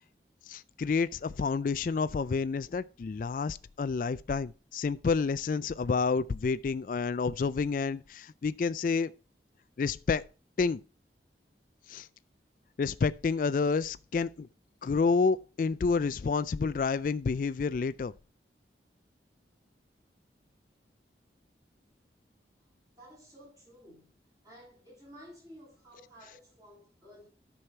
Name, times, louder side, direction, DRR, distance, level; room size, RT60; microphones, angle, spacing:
voice 1, 0.5-9.1 9.8-10.3 10.6-10.8 11.9-12.1 12.8-14.5 14.8-18.1, left 4 dB, 50° left, 0.3 m, -29 dB
voice 2, 23.0-24.2 24.4-27.3, equal, 20° right, 6.2 m, -53 dB
9.8 x 6.3 x 4.4 m
head